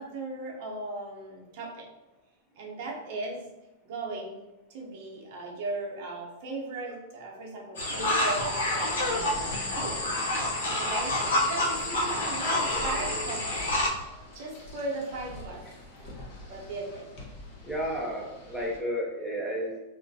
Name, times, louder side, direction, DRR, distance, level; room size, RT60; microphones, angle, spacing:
voice 1, 0.0-1.9 2.6-3.5 3.8-4.4 4.7-10.0 10.8-13.6 14.3-15.6 16.5-17.1, right 2 dB, 60° right, -2 dB, 0.7 m, -37 dB
sound 1, 7.8-13.9, left 1 dB, 85° left, 0.6 m, -28 dB
sound 2, 8.7-18.8, left 1 dB, 50° left, 0.9 m, -45 dB
voice 2, 17.6-19.8, equal, ahead, -4 dB, 0.6 m, -32 dB
2.4 x 2.1 x 2.6 m, 1.0 s
hypercardioid pair, 115°, 0 cm